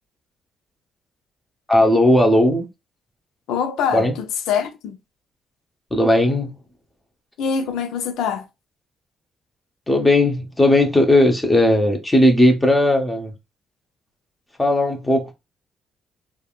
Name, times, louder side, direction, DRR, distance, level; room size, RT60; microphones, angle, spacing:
voice 1, 1.7-2.7 3.9-4.1 5.9-6.5 9.9-13.3 14.6-15.3, left 1 dB, 15° left, 0.7 m, -16 dB
voice 2, 3.5-5.0 7.4-8.5, left 7 dB, 90° left, 0.5 m, -24 dB
3.4 x 2.3 x 2.3 m
cardioid pair, 90°, 0 cm